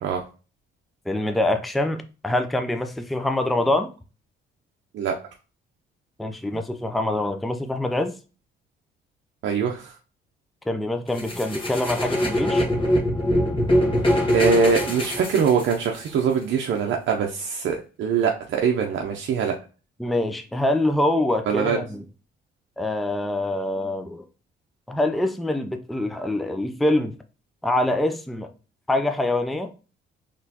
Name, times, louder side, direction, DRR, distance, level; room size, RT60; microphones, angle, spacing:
voice 1, 1.1-3.9 6.2-8.1 10.7-12.7 20.0-22.1 22.8-24.2 24.9-27.2 27.6-28.5 28.9-29.7, left 1 dB, ahead, 0.4 m, -25 dB
voice 2, 9.4-9.9 14.3-19.6 21.5-21.8, right 6 dB, 70° right, 0.6 m, -23 dB
sound 1, 11.1-16.1, equal, 25° left, 1.5 m, -23 dB
4.1 x 3.1 x 2.8 m
cardioid pair, 90°, 20 cm